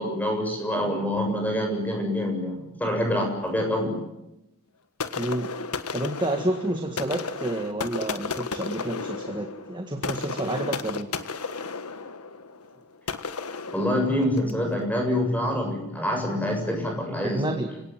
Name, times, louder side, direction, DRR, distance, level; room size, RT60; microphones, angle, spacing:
voice 1, 0.0-4.0 13.7-17.5, left 1 dB, 5° left, 3 dB, 7.4 m, -26 dB
sound 1, 5.0-14.6, left 4 dB, 85° left, 1.6 m, -34 dB
voice 2, 5.2-5.5 5.9-11.1 17.2-17.7, right 1 dB, 20° right, 5 dB, 1.8 m, -29 dB
29.0 x 18.0 x 9.2 m, 0.89 s
head